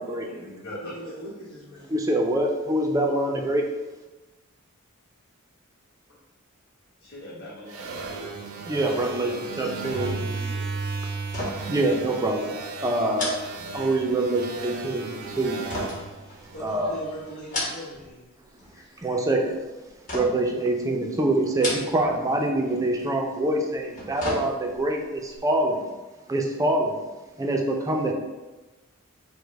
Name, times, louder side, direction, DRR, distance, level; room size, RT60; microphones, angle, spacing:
voice 1, 0.0-0.9 7.0-8.3 9.1-10.7, equal, 50° left, -7 dB, 1.4 m, -42 dB
voice 2, 0.8-1.9 16.5-18.3 18.7-19.0, right 1 dB, 90° left, -6 dB, 1.2 m, -41 dB
voice 3, 1.9-3.7 8.7-10.3 11.7-12.5 12.8-13.3 13.7-15.6 16.6-17.0 19.0-19.6 20.1-25.9 26.3-27.0 27.4-28.1, right 1 dB, 15° right, 2 dB, 0.4 m, -25 dB
sound 1, 7.7-17.1, right 4 dB, 75° right, 0.5 m, -35 dB
sound 2, 11.2-11.8 12.1-12.3 13.1-14.2 15.7-16.8 17.3-18.1 18.4-19.0 20.1-20.6 21.5-22.2 22.5-22.6 23.7-24.9 25.3-25.4, left 1 dB, 35° left, 1.0 m, -33 dB
5.1 x 2.1 x 4.5 m, 1.2 s
head